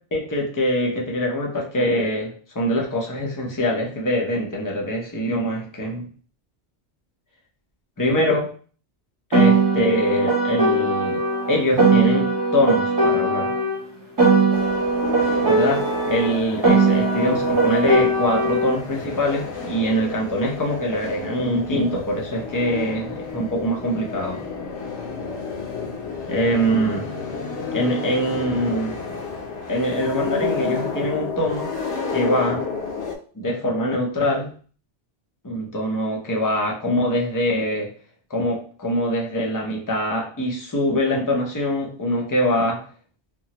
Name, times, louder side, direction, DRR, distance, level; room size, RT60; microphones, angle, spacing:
voice 1, 0.1-6.0 8.0-8.5 9.3-11.2 11.5-12.3 12.5-13.5 15.5-24.4 26.3-27.1 27.7-29.0 29.7-31.7 32.1-32.6 33.4-34.5 35.4-37.9 38.3-42.8, equal, 25° left, -1 dB, 0.5 m, -23 dB
Piano, 9.3-13.8 14.2-18.8, right 3 dB, 20° right, 0.8 m, -19 dB
sound 1, 14.5-33.2, left 5 dB, 85° left, 0.9 m, -31 dB
3.7 x 2.0 x 2.8 m, 0.42 s
omnidirectional pair, 1.1 m